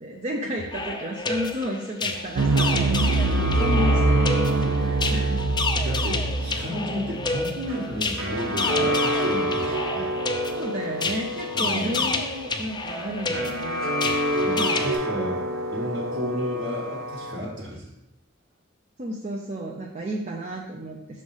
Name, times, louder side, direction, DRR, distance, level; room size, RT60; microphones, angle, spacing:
voice 1, 0.0-3.0 3.4-4.2 4.7-5.5 10.5-13.9 14.6-14.8 19.0-21.0, equal, 35° right, -2 dB, 0.6 m, -32 dB
sound 1, 0.6-15.0, left 3 dB, 20° left, 0.5 m, -30 dB
sound 2, 2.2-17.4, equal, 70° right, 1.0 m, -30 dB
sound 3, 2.4-8.8, right 3 dB, 90° right, 0.5 m, -24 dB
voice 2, 5.8-10.1 11.5-12.1 14.4-17.9, equal, 55° right, -8 dB, 1.2 m, -32 dB
6.3 x 3.2 x 5.4 m, 0.91 s
head